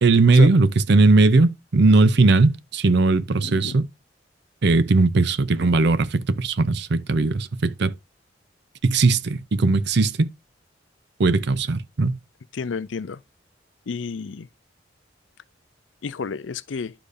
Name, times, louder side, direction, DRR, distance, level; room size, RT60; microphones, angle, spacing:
voice 1, 0.0-3.8 4.6-7.9 8.8-10.3 11.2-12.2, right 3 dB, 65° right, 0.6 m, -18 dB
voice 2, 3.3-3.8 12.5-13.2 13.9-14.5 16.0-16.9, left 5 dB, 80° left, 0.5 m, -31 dB
11.5 x 5.0 x 2.6 m
head